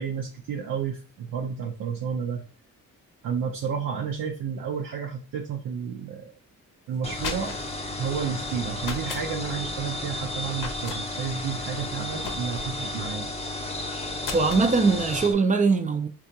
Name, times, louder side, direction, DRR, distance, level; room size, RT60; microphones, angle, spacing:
voice 1, 0.0-2.4 3.2-6.3 6.9-7.6 8.0-13.3, right 7 dB, 70° right, 0.6 m, -31 dB
sound 1, 6.9-7.8 8.8-9.3 10.6-11.0 12.2-12.8 14.2-14.7, left 4 dB, 65° left, 0.7 m, -35 dB
sound 2, 7.0-15.3, left 1 dB, 20° left, 0.6 m, -33 dB
voice 2, 14.3-16.1, right 4 dB, 25° right, 0.4 m, -21 dB
3.6 x 2.4 x 2.7 m
cardioid pair, 100°, 34 cm